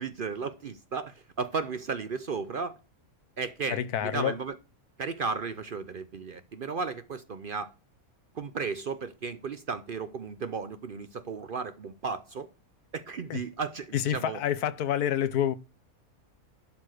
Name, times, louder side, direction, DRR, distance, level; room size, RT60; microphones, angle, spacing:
voice 1, 0.0-2.8 3.4-4.6 5.0-7.7 8.3-12.5 12.9-14.4, right 5 dB, 55° right, 0.6 m, -34 dB
voice 2, 3.7-4.3 13.3-13.4 13.9-15.5, left 10 dB, 85° left, 1.3 m, -28 dB
11.5 x 4.4 x 6.3 m
omnidirectional pair, 1.6 m